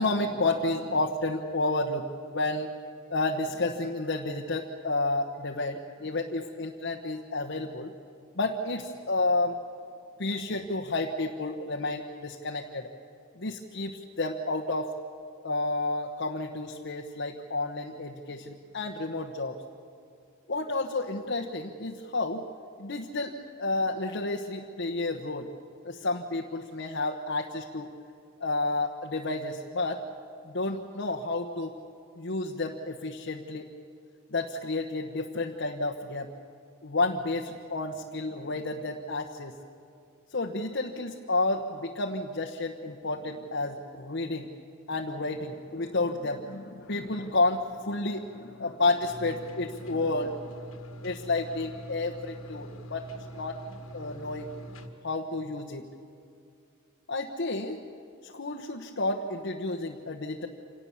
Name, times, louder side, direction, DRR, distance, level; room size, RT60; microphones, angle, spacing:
voice 1, 0.0-2.7 3.1-7.9 8.3-9.6 10.2-12.9 13.4-14.9 15.4-19.6 20.5-22.4 22.8-25.5 25.8-27.9 28.4-30.0 30.4-31.7 32.2-33.7 34.3-36.3 36.8-39.5 40.3-44.5 44.9-50.5 51.0-53.0 53.4-53.6 53.9-54.5 55.0-55.9 57.1-57.8 58.2-60.5, left 2 dB, 60° left, 2 dB, 1.2 m, -31 dB
sound 1, 49.0-54.9, right 1 dB, 80° left, 1.8 m, -44 dB
27.0 x 18.5 x 7.2 m, 2.4 s
head